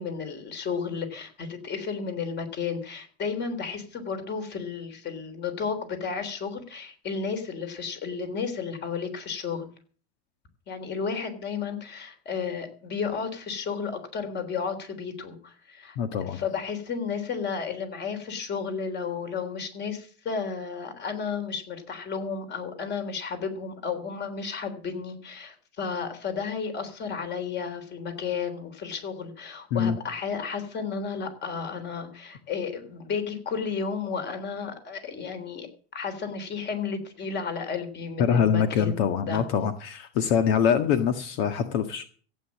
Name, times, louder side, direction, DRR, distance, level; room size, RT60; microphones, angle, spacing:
voice 1, 0.0-9.7 10.7-16.0 16.3-35.7 35.9-39.0 39.3-39.4, left 5 dB, 35° left, 8 dB, 3.4 m, -33 dB
voice 2, 15.9-16.4 29.7-30.0 38.2-42.0, left 7 dB, 70° left, 8 dB, 1.7 m, -24 dB
15.0 x 8.9 x 7.4 m, 0.43 s
supercardioid pair, 125°, 31 cm